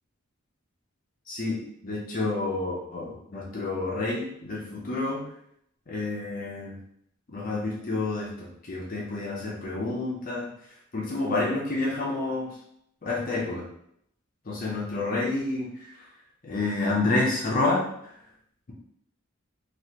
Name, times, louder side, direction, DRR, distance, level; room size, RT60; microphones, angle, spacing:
voice 1, 1.3-5.2 5.9-6.8 7.3-10.5 10.9-12.5 13.0-13.7 14.5-15.7 16.4-17.9, left 2 dB, 45° left, -3 dB, 0.5 m, -29 dB
3.1 x 2.4 x 2.8 m, 0.73 s
head